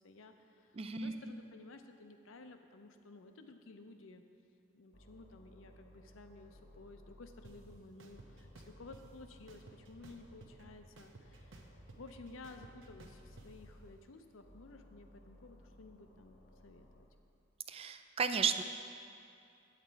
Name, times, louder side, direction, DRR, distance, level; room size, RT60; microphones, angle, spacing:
voice 1, 0.0-4.2 4.7-11.7 12.0-17.1, left 3 dB, 80° left, 7 dB, 0.6 m, -54 dB
voice 2, 0.7-1.1 17.7-18.6, right 6 dB, 30° right, 9 dB, 0.3 m, -34 dB
sound 1, 4.9-7.8 8.1-10.9 11.2-14.0 14.4-17.0, left 1 dB, 50° left, 1.0 m, -59 dB
sound 2, 7.4-7.5 8.0-9.0 9.5-10.6 11.0-13.5, right 3 dB, 75° right, 0.8 m, -55 dB
8.4 x 8.2 x 4.5 m, 2.5 s
head